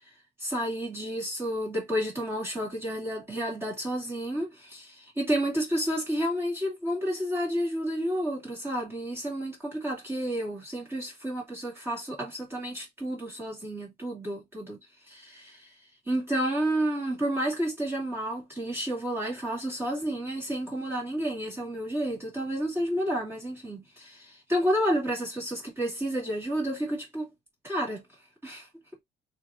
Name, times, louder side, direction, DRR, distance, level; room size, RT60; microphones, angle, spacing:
voice 1, 0.4-14.8 15.1-15.7 16.1-27.3 27.6-28.0 28.4-28.7, equal, 15° right, 2.4 m, -30 dB
4.5 x 3.7 x 2.5 m
cardioid pair, 110°, 17 cm